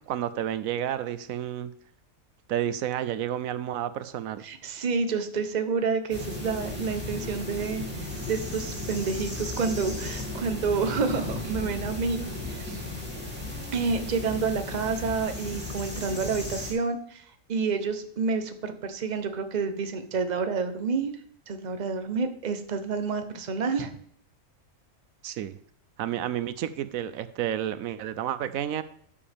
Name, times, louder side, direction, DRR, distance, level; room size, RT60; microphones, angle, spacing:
voice 1, 0.0-1.7 2.5-4.4 25.2-25.6 26.0-28.8, right 11 dB, 85° right, 13 dB, 1.0 m, -30 dB
voice 2, 4.4-12.8 13.7-17.2 17.5-21.1 21.5-23.9, right 5 dB, 35° right, 8 dB, 0.9 m, -29 dB
sound 1, 6.1-16.7, left 2 dB, 5° right, 2.8 m, -35 dB
12.5 x 6.9 x 3.5 m, 0.63 s
omnidirectional pair, 1.4 m